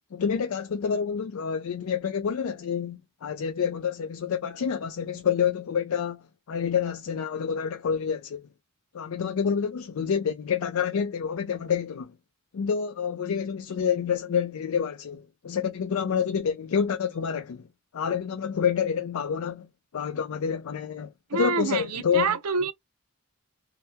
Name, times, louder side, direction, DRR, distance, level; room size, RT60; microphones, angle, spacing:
voice 1, 0.1-8.4 8.9-12.1 12.5-17.7 17.9-19.7 19.9-22.3, left 7 dB, 65° left, 0.4 m, -28 dB
voice 2, 21.3-22.7, right 4 dB, 85° right, 0.6 m, -27 dB
2.8 x 2.0 x 3.4 m
head